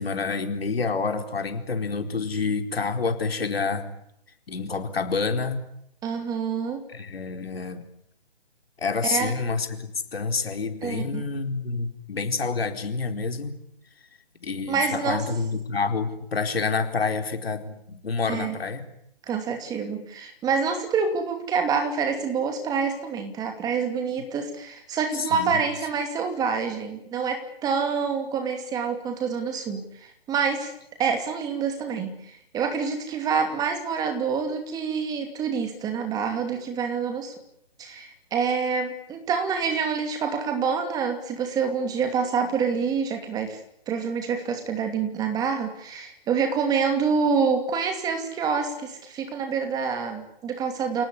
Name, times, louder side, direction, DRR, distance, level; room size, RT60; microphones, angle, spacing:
voice 1, 0.0-3.8 4.5-5.6 6.9-7.9 8.8-13.6 14.4-18.8 25.1-25.6, left 4 dB, 70° left, 6 dB, 4.4 m, -28 dB
voice 2, 6.0-6.8 9.1-9.3 10.8-11.2 14.7-15.2 18.3-18.5 19.3-30.7 31.0-37.3 37.8-43.6 43.9-51.0, right 6 dB, 10° right, 6 dB, 2.7 m, -27 dB
28.5 x 19.0 x 9.9 m, 0.76 s
hypercardioid pair, 150°, 31 cm